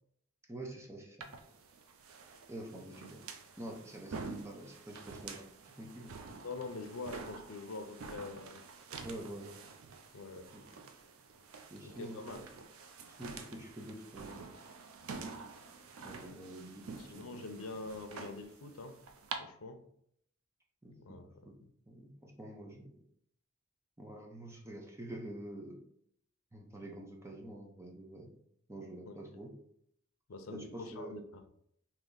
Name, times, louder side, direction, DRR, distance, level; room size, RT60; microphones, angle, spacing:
voice 1, 0.5-1.3 2.5-3.2 3.6-5.4 5.8-6.2 9.0-9.5 10.5-10.6 11.7-12.2 13.2-14.4 16.0-17.4 20.8-21.2 21.4-21.5 21.9-22.9 24.0-25.8 26.5-28.3 28.7-29.5 30.5-31.1, right 1 dB, 15° right, 0 dB, 0.7 m, -47 dB
sound 1, 1.2-19.4, right 4 dB, 75° right, 0.5 m, -48 dB
voice 2, 6.4-8.6 10.1-10.5 11.8-12.4 17.0-19.0 19.4-19.8 20.9-21.3 30.3-31.4, left 3 dB, 75° left, 7 dB, 0.6 m, -44 dB
3.5 x 2.9 x 3.9 m, 0.69 s
head